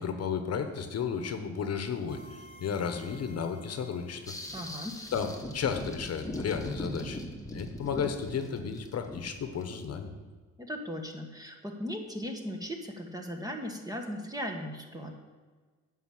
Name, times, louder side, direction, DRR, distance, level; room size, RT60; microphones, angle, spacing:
voice 1, 0.0-4.3 5.1-7.2 7.5-10.1, left 6 dB, 55° left, 7 dB, 1.2 m, -33 dB
sound 1, 2.1-5.8, equal, 70° right, 2.9 m, -55 dB
sound 2, 4.3-9.6, left 1 dB, 10° left, 1.4 m, -40 dB
voice 2, 4.5-5.0 10.6-15.2, equal, 10° right, 2 dB, 1.4 m, -37 dB
9.8 x 5.7 x 7.7 m, 1.4 s
cardioid pair, 90°, 30 cm